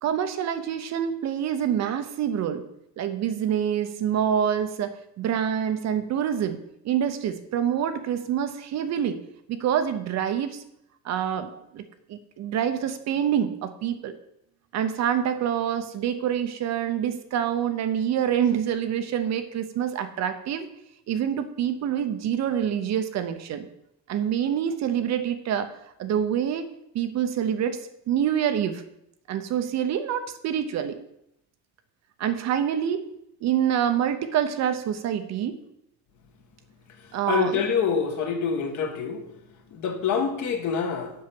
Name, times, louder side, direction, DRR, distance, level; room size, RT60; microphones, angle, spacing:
voice 1, 0.0-2.6 3.0-6.6 6.8-9.2 9.5-10.6 11.0-11.8 12.1-14.1 14.7-20.7 21.1-23.7 24.1-25.7 26.0-26.7 26.9-27.8 28.1-28.8 29.3-31.0 32.2-33.0 33.4-35.6 37.1-37.6, right 9 dB, 45° right, 9 dB, 0.7 m, -26 dB
voice 2, 37.3-39.2 39.7-41.1, left 6 dB, 50° left, 5 dB, 1.5 m, -26 dB
7.7 x 5.7 x 7.6 m, 0.80 s
cardioid pair, 170°, 38 cm